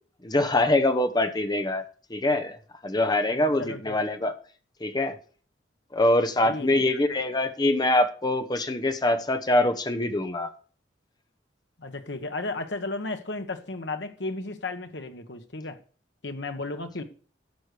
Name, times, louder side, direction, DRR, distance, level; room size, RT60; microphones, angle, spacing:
voice 1, 0.2-2.6 2.8-4.3 4.8-5.2 5.9-10.5, left 1 dB, 20° left, 0.9 m, -24 dB
voice 2, 3.3-4.0 6.4-6.8 11.8-15.8 16.2-17.0, left 2 dB, 70° left, 1.3 m, -34 dB
12.0 x 6.3 x 6.6 m
head